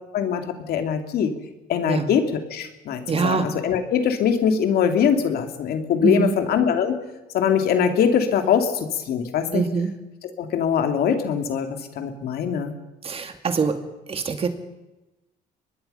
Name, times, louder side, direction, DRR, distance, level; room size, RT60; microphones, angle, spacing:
voice 1, 0.1-1.3 1.7-7.0 7.3-9.6 10.4-12.7, left 7 dB, 65° left, 6 dB, 2.7 m, -22 dB
voice 2, 3.1-3.5 6.0-6.4 9.5-9.9 13.0-13.8 14.1-14.5, right 5 dB, 35° right, 7 dB, 2.4 m, -23 dB
24.5 x 19.5 x 5.7 m, 1.0 s
cardioid pair, 110°, 17 cm